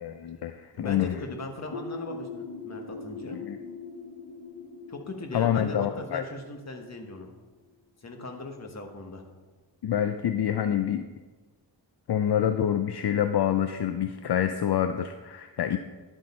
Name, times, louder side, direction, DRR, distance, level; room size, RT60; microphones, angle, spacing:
voice 1, 0.0-1.2 3.3-3.6 5.3-6.2 9.8-11.0 12.1-15.8, left 10 dB, 65° left, 9 dB, 0.5 m, -27 dB
voice 2, 0.8-3.4 4.9-7.3 8.0-9.2, left 2 dB, 40° left, 3 dB, 1.2 m, -39 dB
sound 1, 1.7-7.3, left 3 dB, 85° left, 1.0 m, -41 dB
10.5 x 8.0 x 4.3 m, 1.3 s
wide cardioid pair, 160°, 42 cm